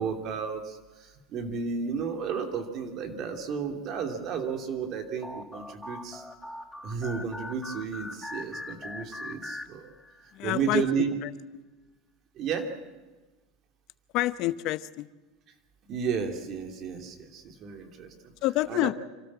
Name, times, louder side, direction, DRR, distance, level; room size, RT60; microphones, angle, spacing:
voice 1, 0.0-6.2 6.8-9.9 10.2-11.2 12.3-12.7 15.9-18.3 18.7-18.9, right 6 dB, 45° right, 4 dB, 2.9 m, -32 dB
sound 1, 5.2-10.3, left 2 dB, 5° left, 1.5 m, -41 dB
voice 2, 10.3-10.8 11.2-11.3 14.1-15.1 18.4-18.9, left 16 dB, 55° left, 15 dB, 0.8 m, -27 dB
27.5 x 13.0 x 7.4 m, 1.2 s
supercardioid pair, 115°, 0 cm